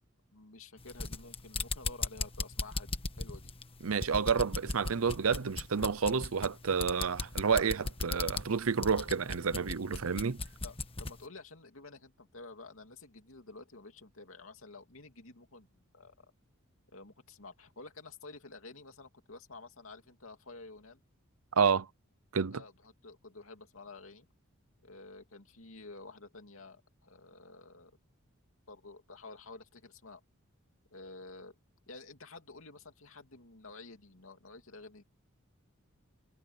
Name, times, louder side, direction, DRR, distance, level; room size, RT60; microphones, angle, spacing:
voice 1, 0.3-3.5 6.0-6.2 9.9-10.1 10.6-16.3 16.9-21.0 22.5-24.3 24.8-27.9 28.7-30.2 30.9-31.5 31.9-35.0, left 3 dB, 70° left, 2.8 m, -51 dB
sound 1, 0.8-11.2, left 3 dB, 25° left, 1.3 m, -38 dB
voice 2, 3.8-10.4 21.6-21.9 22.3-22.6, right 6 dB, 85° right, 0.7 m, -29 dB
head